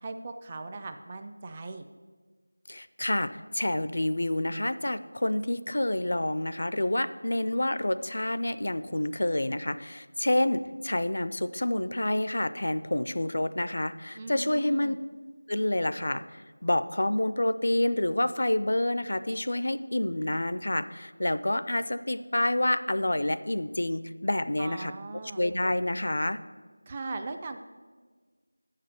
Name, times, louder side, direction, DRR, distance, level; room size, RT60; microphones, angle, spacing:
voice 1, 0.0-1.8 14.2-15.0 24.6-25.4 26.9-27.6, right 3 dB, 20° right, 7 dB, 0.3 m, -39 dB
voice 2, 2.7-14.9 15.5-24.9 25.4-26.4, left 1 dB, 60° left, 13 dB, 0.4 m, -28 dB
7.3 x 6.5 x 6.9 m, 1.4 s
figure-of-eight pair, 175°, 0 cm